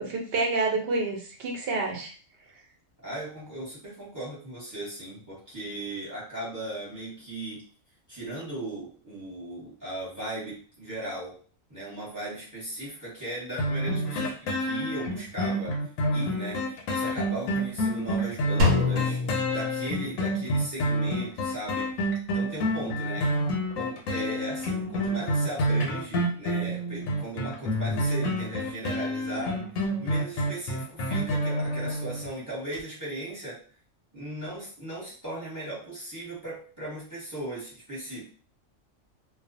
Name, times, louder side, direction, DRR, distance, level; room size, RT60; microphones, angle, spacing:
voice 1, 0.0-2.1, right 3 dB, 60° right, 0 dB, 0.7 m, -28 dB
voice 2, 3.0-7.6 8.1-11.4 11.7-22.1 22.3-23.4 23.7-29.7 30.0-33.6 34.1-38.3, right 1 dB, 15° right, -6 dB, 1.0 m, -37 dB
sound 1, 13.6-32.3 32.7-32.8, equal, 90° left, 1.0 m, -28 dB
Drum, 18.6-20.5, left 3 dB, 90° right, 1.1 m, -26 dB
2.3 x 2.2 x 2.6 m, 0.41 s
omnidirectional pair, 1.4 m